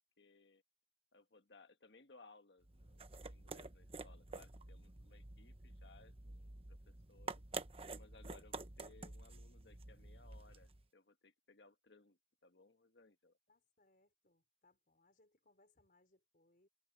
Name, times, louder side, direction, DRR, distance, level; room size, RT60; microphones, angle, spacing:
voice 1, 0.2-0.6 1.1-7.4 7.9-13.4, left 3 dB, 80° left, 1.6 m, -64 dB
sound 1, 2.6-10.8, right 3 dB, 35° right, 1.1 m, -50 dB
voice 2, 13.5-16.7, left 2 dB, 55° left, 4.9 m, -73 dB
head